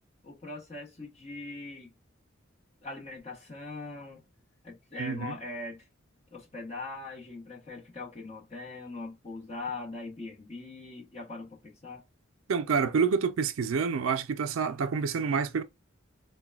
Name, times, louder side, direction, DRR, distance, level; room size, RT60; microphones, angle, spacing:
voice 1, 0.2-1.9 2.8-4.2 4.6-5.9 6.3-12.0, left 3 dB, 30° left, 1.1 m, -41 dB
voice 2, 5.0-5.3 12.5-15.6, right 5 dB, 80° right, 0.4 m, -28 dB
3.9 x 2.2 x 2.2 m
head